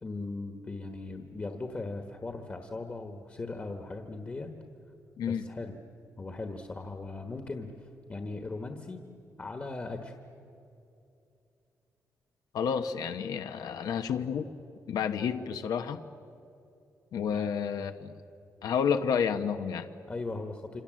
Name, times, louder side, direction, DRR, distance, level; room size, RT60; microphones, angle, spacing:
voice 1, 0.0-4.5 5.2-5.8 6.2-9.0 9.4-10.1 17.3-17.5 20.1-20.8, left 3 dB, 25° left, 5 dB, 1.3 m, -38 dB
voice 2, 12.5-14.5 14.9-16.0 17.1-18.1 18.6-19.9, left 7 dB, 90° left, 7 dB, 1.1 m, -30 dB
27.0 x 27.0 x 7.6 m, 2.7 s
wide cardioid pair, 170°, 6 cm